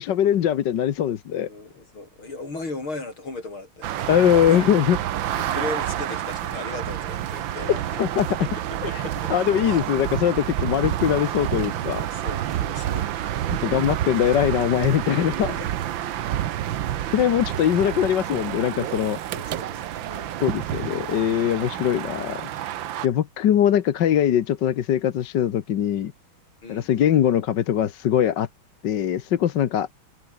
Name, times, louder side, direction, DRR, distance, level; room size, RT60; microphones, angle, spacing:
voice 1, 0.0-1.5 4.1-5.0 7.7-8.5 9.3-12.1 13.5-15.6 17.1-19.2 20.4-22.4 23.0-26.1 26.7-28.5 28.8-29.9, left 10 dB, 60° left, 1.6 m, -22 dB
voice 2, 1.3-3.9 4.3-4.6 5.4-7.8 8.7-9.3 9.7-9.8 10.7-10.8 12.1-13.1 15.1-15.7 17.0-17.2 19.3-20.4 26.6-26.9, left 3 dB, 80° left, 7.4 m, -37 dB
sound 1, 3.8-23.1, right 11 dB, 70° right, 1.7 m, -29 dB
omnidirectional pair, 2.3 m